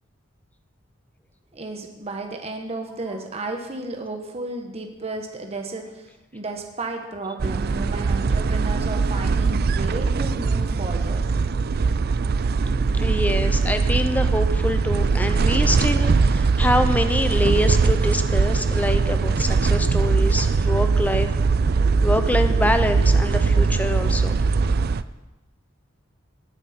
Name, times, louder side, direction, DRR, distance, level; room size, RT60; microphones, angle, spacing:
voice 1, 1.5-11.3, right 2 dB, 30° right, 3 dB, 1.3 m, -33 dB
sound 1, 7.4-25.0, right 4 dB, 50° right, 0.4 m, -21 dB
voice 2, 13.0-21.3 22.0-24.4, left 1 dB, 10° left, 8 dB, 0.8 m, -25 dB
19.5 x 9.8 x 4.3 m, 1.1 s
head